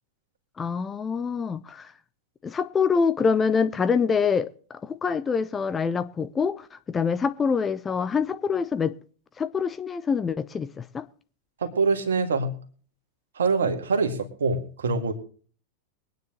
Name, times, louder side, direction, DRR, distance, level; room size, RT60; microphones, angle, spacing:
voice 1, 0.6-1.9 2.4-9.0 9.4-11.1, left 5 dB, 20° left, 0.7 m, -25 dB
voice 2, 11.6-12.5 13.4-15.1, right 4 dB, 65° right, 2.0 m, -24 dB
23.0 x 9.4 x 3.0 m
figure-of-eight pair, 90°, 0 cm